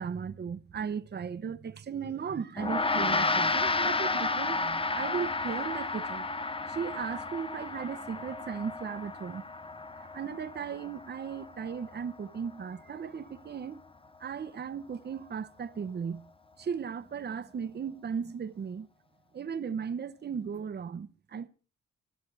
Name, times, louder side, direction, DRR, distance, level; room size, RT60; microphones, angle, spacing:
voice 1, 0.0-6.3 6.7-9.5 10.0-13.8 14.2-16.2 16.6-18.9 19.3-21.5, right 6 dB, 35° right, 0.8 m, -36 dB
Gong, 2.6-12.2, left 3 dB, 20° left, 0.7 m, -32 dB
24.5 x 12.0 x 3.3 m
cardioid pair, 90°, 30 cm